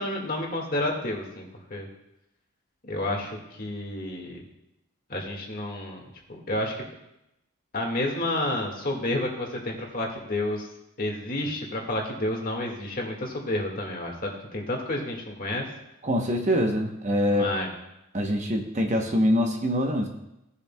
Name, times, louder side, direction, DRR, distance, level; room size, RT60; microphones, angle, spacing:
voice 1, 0.0-1.9 2.8-4.4 5.1-6.0 6.3-6.8 7.7-10.7 11.0-15.7 17.3-17.7, left 1 dB, 40° left, 1 dB, 1.7 m, -30 dB
voice 2, 16.0-17.5 18.1-20.1, equal, 30° right, 3 dB, 0.8 m, -24 dB
17.0 x 7.1 x 2.2 m, 0.88 s
head